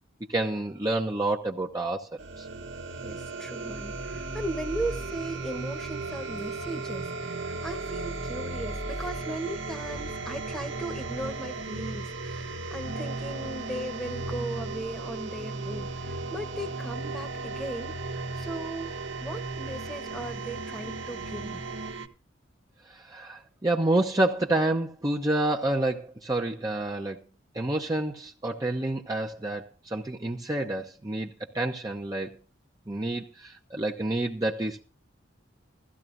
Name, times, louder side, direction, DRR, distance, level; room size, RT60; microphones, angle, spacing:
voice 1, 0.3-2.1 2.4-2.5 22.9-27.2 27.5-32.4 32.9-34.8, right 2 dB, 20° right, 0.8 m, -28 dB
sound 1, 2.2-22.1, right 3 dB, 65° right, 1.2 m, -35 dB
voice 2, 3.0-21.6, right 1 dB, 5° left, 1.1 m, -37 dB
16.5 x 14.0 x 2.6 m
head